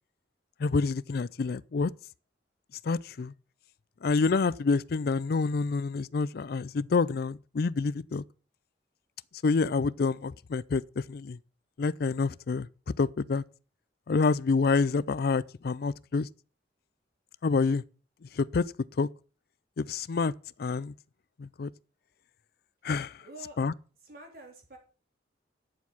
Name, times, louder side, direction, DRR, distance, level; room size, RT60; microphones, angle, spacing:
voice 1, 0.6-1.9 2.8-3.3 4.0-8.2 9.4-11.4 11.8-12.7 13.0-13.4 14.1-16.3 17.4-17.8 18.3-18.7 19.0-19.1 19.8-20.3 20.6-20.9 21.4-21.7 22.8-23.2 23.6-23.7, left 4 dB, 60° left, 0.4 m, -27 dB
voice 2, 23.2-23.6 24.0-24.8, right 2 dB, 55° right, 3.7 m, -47 dB
10.5 x 7.2 x 5.8 m
head